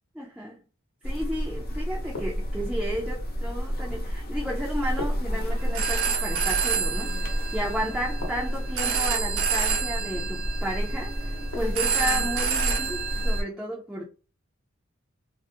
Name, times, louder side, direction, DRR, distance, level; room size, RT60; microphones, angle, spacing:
voice 1, 0.2-0.6 1.0-14.0, equal, 5° right, 0.4 m, -33 dB
sound 1, 1.0-13.4, equal, 45° left, 0.6 m, -30 dB
sound 2, 2.1-2.9 5.0-6.0 8.2-9.0 11.5-12.2, left 2 dB, 70° left, 0.9 m, -40 dB
Telephone, 5.6-13.4, right 7 dB, 65° right, 0.7 m, -29 dB
2.4 x 2.0 x 2.6 m
head